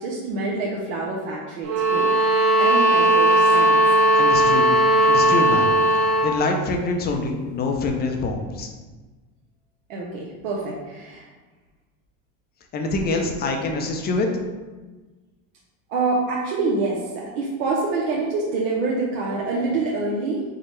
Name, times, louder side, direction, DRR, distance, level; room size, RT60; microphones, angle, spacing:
voice 1, 0.0-2.1 2.6-3.8 9.9-11.3 15.9-20.4, right 3 dB, 90° right, -4 dB, 0.7 m, -26 dB
sound 1, 1.6-6.4, right 1 dB, 35° right, 0.8 m, -17 dB
voice 2, 4.2-4.7 5.0-5.7 6.2-8.7 12.7-14.3, left 3 dB, 25° left, 3 dB, 0.4 m, -25 dB
4.6 x 2.1 x 3.0 m, 1.3 s
supercardioid pair, 125°, 39 cm